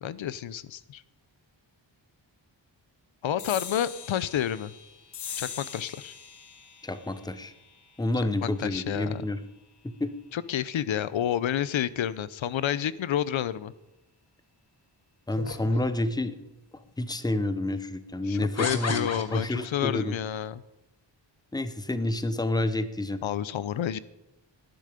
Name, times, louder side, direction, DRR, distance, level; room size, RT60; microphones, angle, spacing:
voice 1, 0.0-1.0 3.2-4.7 5.4-6.1 8.4-9.2 10.3-13.7 18.3-20.6 23.2-24.0, left 10 dB, 85° left, 17 dB, 0.7 m, -30 dB
sound 1, 3.4-10.2, left 7 dB, 60° left, 1.3 m, -43 dB
voice 2, 6.8-7.5 8.0-9.4 9.8-10.1 15.3-16.4 16.7-20.2 21.5-23.2, left 1 dB, 10° left, 11 dB, 0.8 m, -29 dB
sound 2, 15.3-16.2 17.0-17.1 18.6-19.9, left 4 dB, 35° left, 1.4 m, -35 dB
19.0 x 10.5 x 5.1 m, 0.93 s
wide cardioid pair, 150°, 45 cm